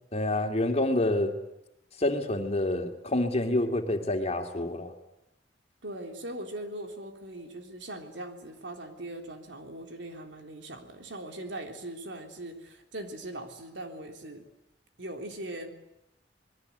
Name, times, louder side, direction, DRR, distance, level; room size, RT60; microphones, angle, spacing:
voice 1, 0.1-1.3 2.0-4.9, left 1 dB, 35° left, 4 dB, 2.7 m, -27 dB
voice 2, 5.8-14.5 15.0-15.7, right 1 dB, 85° right, 4 dB, 3.5 m, -40 dB
26.0 x 21.0 x 8.3 m, 0.87 s
head